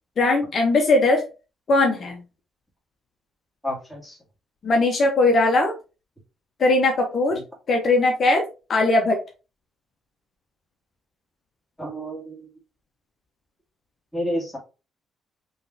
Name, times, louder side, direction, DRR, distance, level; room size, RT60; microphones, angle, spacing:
voice 1, 0.2-1.3 1.7-2.2 4.6-5.7 6.6-7.4 7.7-8.4 8.7-9.2, left 2 dB, 50° left, 2 dB, 1.0 m, -19 dB
voice 2, 3.6-4.2 7.3-7.4 11.8-12.5 14.1-14.6, equal, 5° left, -3 dB, 2.4 m, -30 dB
5.2 x 3.3 x 2.7 m, 0.31 s
cardioid pair, 85°, 0 cm